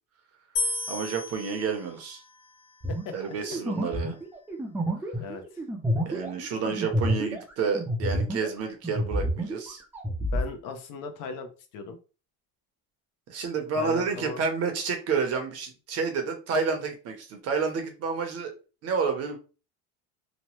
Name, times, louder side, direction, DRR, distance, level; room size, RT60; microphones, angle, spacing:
sound 1, 0.6-3.8, left 3 dB, 80° left, 1.1 m, -35 dB
voice 1, 0.9-2.2 3.1-4.2 6.1-9.8 13.3-18.5 18.8-19.4, right 5 dB, 45° right, 5 dB, 0.7 m, -29 dB
sound 2, 2.8-8.6 8.8-10.5, equal, 5° right, 0.4 m, -29 dB
voice 2, 5.2-5.6 10.3-12.0 13.8-14.4, left 5 dB, 60° left, 6 dB, 0.7 m, -38 dB
2.9 x 2.1 x 3.0 m, 0.34 s
cardioid pair, 135°, 36 cm